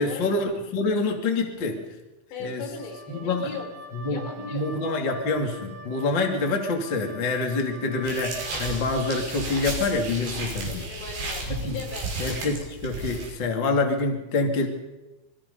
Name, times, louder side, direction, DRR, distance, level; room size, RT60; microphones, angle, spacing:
voice 1, 0.0-1.8 2.4-2.6 3.1-3.5 3.9-10.9 11.5-11.8 12.2-14.7, left 3 dB, 35° left, 2 dB, 2.1 m, -26 dB
voice 2, 2.3-5.0 10.7-12.1, left 4 dB, 65° left, 2 dB, 5.7 m, -38 dB
Wind instrument woodwind instrument, 2.7-9.4, right 1 dB, 80° right, 5.0 m, -44 dB
sound 1, 8.0-13.3, right 2 dB, 65° right, 7.8 m, -33 dB
26.5 x 22.5 x 5.5 m, 1.1 s
omnidirectional pair, 5.7 m